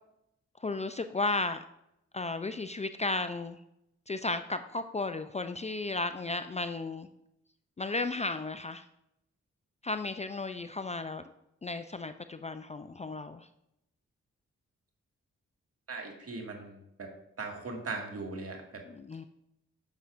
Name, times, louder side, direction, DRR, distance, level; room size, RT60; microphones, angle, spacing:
voice 1, 0.6-1.6 2.1-3.6 4.1-7.1 7.8-8.8 9.8-11.2 11.6-13.5 18.9-19.2, left 3 dB, 25° left, 10 dB, 0.4 m, -34 dB
voice 2, 15.9-17.1 17.4-18.8, right 3 dB, 50° right, 1 dB, 1.9 m, -39 dB
8.8 x 6.9 x 2.5 m, 0.81 s
supercardioid pair, 45°, 30 cm